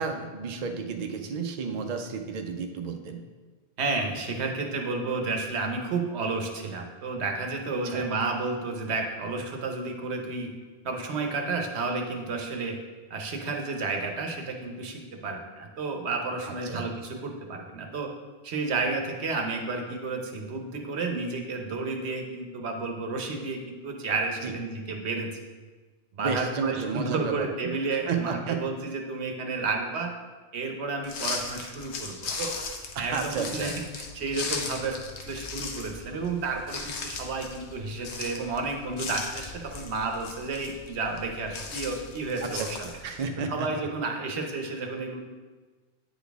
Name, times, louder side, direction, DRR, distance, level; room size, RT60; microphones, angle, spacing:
voice 1, 0.0-3.2 7.8-8.1 16.5-16.9 24.4-24.5 26.2-27.7 28.1-28.6 33.0-33.7 42.4-43.7, right 5 dB, 50° right, 5 dB, 0.5 m, -32 dB
voice 2, 3.8-10.5 10.8-12.8 13.1-18.1 18.4-25.4 26.1-30.1 30.5-32.5 33.0-42.8 43.5-45.2, right 3 dB, 80° right, 3 dB, 1.1 m, -31 dB
sound 1, 31.0-43.3, left 4 dB, 90° left, 1.0 m, -38 dB
8.8 x 4.0 x 3.4 m, 1.3 s
omnidirectional pair, 1.1 m